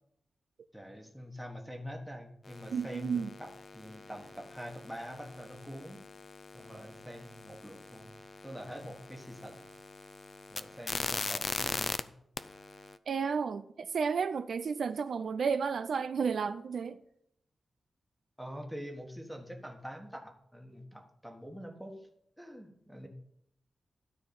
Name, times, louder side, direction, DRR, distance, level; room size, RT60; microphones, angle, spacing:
voice 1, 0.7-6.0 6.5-8.1 8.4-9.7 10.5-12.1 18.4-22.0 22.4-23.1, equal, ahead, 1.4 m, -45 dB
sound 1, 2.5-12.0 12.4-13.0, left 3 dB, 35° left, 0.4 m, -41 dB
voice 2, 2.7-3.3 13.1-17.0, right 6 dB, 65° right, 0.4 m, -32 dB
12.5 x 4.5 x 6.9 m
wide cardioid pair, 155°, 0 cm